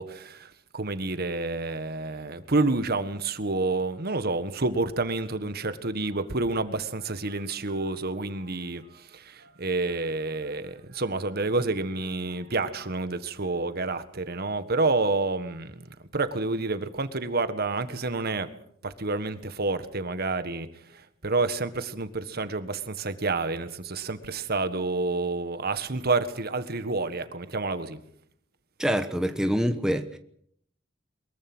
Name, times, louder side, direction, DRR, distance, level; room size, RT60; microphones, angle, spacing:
voice 1, 0.0-18.5 18.8-28.0, right 3 dB, 50° right, 1.6 m, -29 dB
voice 2, 28.8-30.2, equal, 5° right, 1.1 m, -25 dB
23.0 x 22.0 x 6.2 m
head